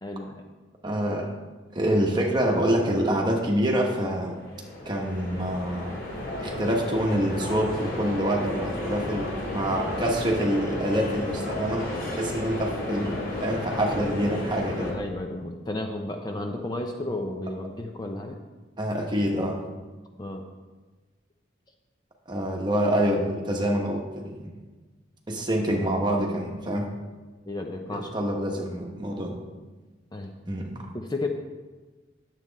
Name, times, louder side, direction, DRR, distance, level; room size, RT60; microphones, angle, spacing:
voice 1, 0.0-0.4 14.9-18.4 20.2-20.4 27.5-28.1 30.1-30.3 30.9-31.3, left 2 dB, 20° left, 3 dB, 0.5 m, -33 dB
voice 2, 0.8-1.3 1.7-4.4 4.8-5.9 6.4-15.0 18.8-19.6 22.3-24.5 25.3-26.9 27.9-29.4 30.5-30.7, equal, 25° right, 0 dB, 1.2 m, -26 dB
sound 1, 4.1-14.9, left 1 dB, 45° left, 2.4 m, -33 dB
9.3 x 7.5 x 4.0 m, 1.3 s
head